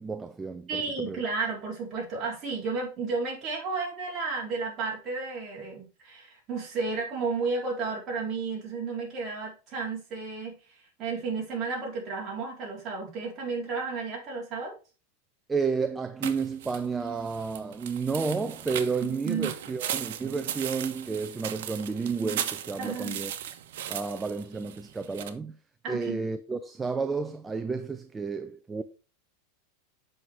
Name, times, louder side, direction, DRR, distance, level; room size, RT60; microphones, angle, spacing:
voice 1, 0.0-1.2 15.5-23.3 23.9-25.6 25.9-28.8, right 4 dB, 10° right, 0.5 m, -31 dB
voice 2, 0.7-10.6 11.0-14.8 19.0-19.5 22.8-23.2 25.8-26.3, right 4 dB, 25° right, 4.2 m, -32 dB
sound 1, 16.2-25.3, right 10 dB, 70° right, 1.2 m, -37 dB
7.8 x 5.9 x 4.8 m
supercardioid pair, 160°, 0 cm